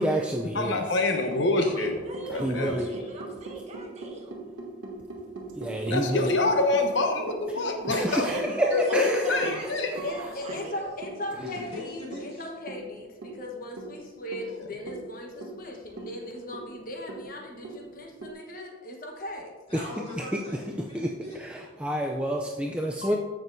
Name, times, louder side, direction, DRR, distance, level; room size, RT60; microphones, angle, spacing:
voice 1, 0.0-0.8 2.3-2.9 5.6-6.4 7.9-9.7 19.7-19.8 20.9-23.2, right 1 dB, 5° right, 0.4 m, -29 dB
voice 2, 0.5-1.9 2.3-2.7 5.9-8.3 8.6-9.9 14.4-14.6 23.0-23.2, left 2 dB, 70° left, 1.0 m, -26 dB
sound 1, 1.3-18.3, right 2 dB, 90° right, 1.2 m, -41 dB
voice 3, 1.6-4.3 7.8-11.0, right 1 dB, 35° right, 1.4 m, -38 dB
voice 4, 10.0-19.5, left 1 dB, 45° left, 1.2 m, -38 dB
voice 5, 11.4-12.5 19.7-21.4, left 1 dB, 30° left, 2.9 m, -40 dB
14.5 x 6.1 x 2.7 m
head